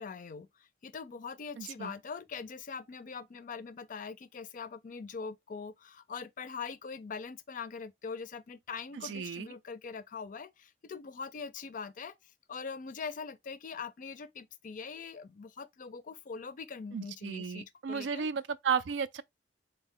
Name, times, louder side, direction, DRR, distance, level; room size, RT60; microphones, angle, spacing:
voice 1, 0.0-12.2 12.5-18.3, left 5 dB, 45° left, 0.4 m, -42 dB
voice 2, 1.6-1.9 9.0-9.5 16.9-19.2, right 6 dB, 85° right, 0.4 m, -34 dB
3.9 x 2.1 x 3.6 m
head